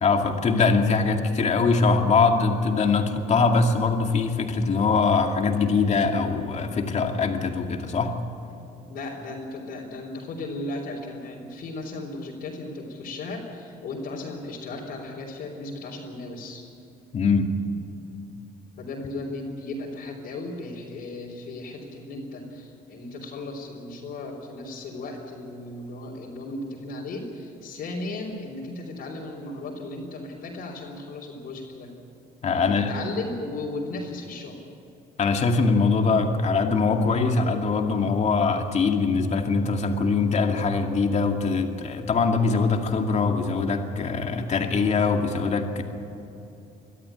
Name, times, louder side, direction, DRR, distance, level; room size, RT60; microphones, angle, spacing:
voice 1, 0.0-8.1 17.1-17.5 32.4-32.9 35.2-45.8, left 4 dB, 45° left, 4 dB, 2.4 m, -22 dB
voice 2, 8.9-16.6 18.8-31.9 32.5-34.6, left 2 dB, 65° left, -4 dB, 4.0 m, -36 dB
23.0 x 13.5 x 10.0 m, 2.8 s
cardioid pair, 110°, 17 cm